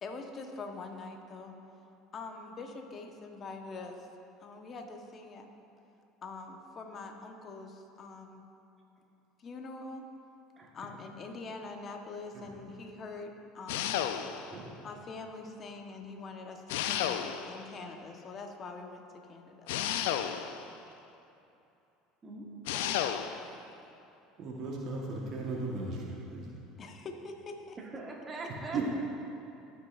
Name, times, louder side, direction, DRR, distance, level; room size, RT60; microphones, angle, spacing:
voice 1, 0.0-1.5 2.1-4.1 4.4-5.5 6.2-8.4 9.4-10.0 10.7-14.0 14.8-19.0 19.3-19.7 26.8-27.8, left 3 dB, 40° left, 4 dB, 1.1 m, -44 dB
voice 2, 10.6-10.9 14.5-14.8 22.2-22.5 22.7-23.0 27.8-29.0, right 2 dB, 30° right, -1 dB, 1.4 m, -43 dB
sound 1, 13.7-14.6 16.7-17.7 19.7-20.7 22.7-23.4, left 10 dB, 75° left, 0.4 m, -32 dB
voice 3, 24.4-26.6 28.7-29.0, right 3 dB, 55° right, -2 dB, 1.3 m, -36 dB
15.5 x 6.3 x 2.5 m, 2.8 s
hypercardioid pair, 75°, 0 cm